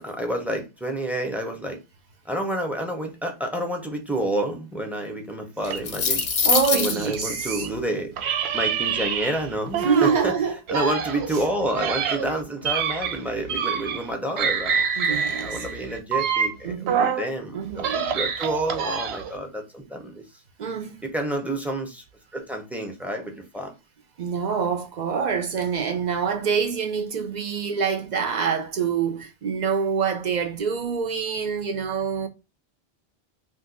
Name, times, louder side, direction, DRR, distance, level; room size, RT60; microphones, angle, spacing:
voice 1, 0.0-1.8 2.3-6.2 6.7-8.1 8.5-10.3 10.7-14.8 15.4-20.2 21.1-22.0 22.3-23.7, right 1 dB, ahead, 0.5 m, -29 dB
sound 1, 5.6-7.2, left 5 dB, 50° left, 0.6 m, -23 dB
sound 2, 5.7-7.7 8.2-10.3 10.7-14.1 14.4-17.3 17.7-19.4, right 6 dB, 85° right, 0.8 m, -27 dB
voice 2, 6.4-7.7 9.7-10.6 11.3-11.4 15.0-15.6 16.6-17.2 17.5-18.2 20.6-21.0 24.2-32.3, right 6 dB, 55° right, 0.5 m, -26 dB
2.6 x 2.4 x 3.8 m
omnidirectional pair, 1.1 m